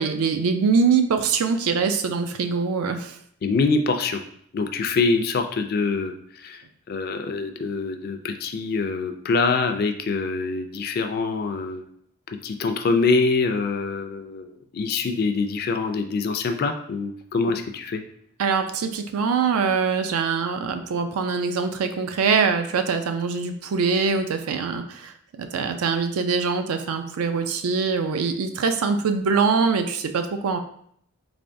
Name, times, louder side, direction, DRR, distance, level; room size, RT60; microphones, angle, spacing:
voice 1, 0.0-3.2 18.4-30.6, right 5 dB, 80° right, 7 dB, 0.4 m, -23 dB
voice 2, 3.4-4.2 4.5-11.8 12.4-18.0, left 4 dB, 45° left, 7 dB, 0.3 m, -25 dB
3.7 x 3.4 x 2.6 m, 0.66 s
head